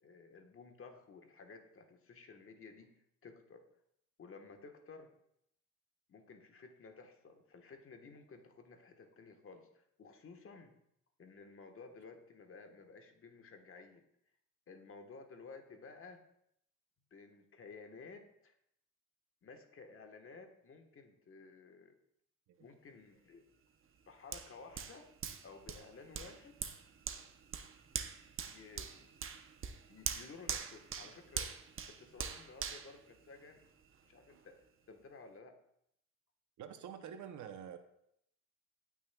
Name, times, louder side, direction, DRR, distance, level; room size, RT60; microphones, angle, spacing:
voice 1, 0.0-2.9 3.2-3.6 4.2-5.1 6.1-10.7 11.2-14.0 14.7-16.2 17.1-18.5 19.4-22.0 22.6-23.4 24.1-25.1 25.4-26.6 28.4-29.1 29.9-31.6 31.9-33.7 34.0-34.6 34.9-35.5, left 4 dB, 45° left, 5 dB, 1.4 m, -54 dB
Hands, 24.3-33.8 34.3-34.4, right 7 dB, 45° right, 0.8 m, -43 dB
voice 2, 36.6-37.8, right 8 dB, 75° right, 8 dB, 0.8 m, -47 dB
17.0 x 6.3 x 2.3 m, 0.75 s
cardioid pair, 90°, 30 cm